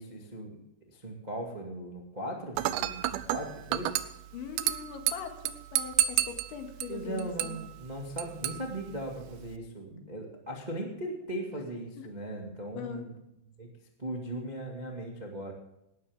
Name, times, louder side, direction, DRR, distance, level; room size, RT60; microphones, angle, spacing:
voice 1, 0.0-3.9 6.9-13.1 13.6-13.7 14.0-15.5, right 1 dB, 60° right, 0 dB, 0.4 m, -38 dB
Dishes pots and pans / Glass, 2.6-9.6, right 13 dB, 85° right, 2.9 m, -33 dB
voice 2, 4.3-7.6 12.0-12.1 12.8-13.1, left 7 dB, 85° left, 5 dB, 4.1 m, -41 dB
18.5 x 12.0 x 3.6 m, 0.84 s
omnidirectional pair, 5.2 m